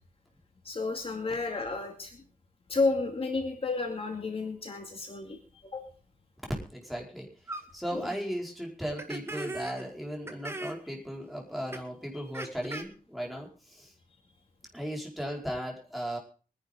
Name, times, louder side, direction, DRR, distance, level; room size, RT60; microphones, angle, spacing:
voice 1, 0.6-2.2 2.7-5.9 7.9-8.1, left 3 dB, 40° left, 3 dB, 2.4 m, -32 dB
voice 2, 6.7-7.3 7.7-13.9 14.7-16.2, equal, ahead, -1 dB, 5.0 m, -36 dB
sound 1, 7.5-7.6 8.0-8.1 9.0-9.8 10.3-10.8 11.7-11.8 12.3-12.8, right 2 dB, 15° right, 2.0 m, -38 dB
23.5 x 10.5 x 3.8 m, 0.37 s
wide cardioid pair, 145°, 14 cm